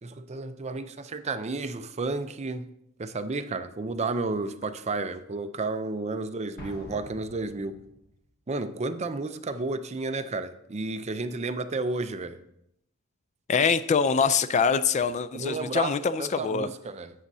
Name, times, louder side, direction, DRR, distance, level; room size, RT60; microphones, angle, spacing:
voice 1, 0.0-2.7 3.0-7.8 8.5-12.4 15.3-17.1, right 3 dB, 30° right, 0.5 m, -32 dB
Explosion, 6.6-8.2, equal, 50° left, 1.5 m, -46 dB
voice 2, 13.5-16.7, left 5 dB, 35° left, 0.3 m, -24 dB
11.5 x 8.2 x 2.7 m
head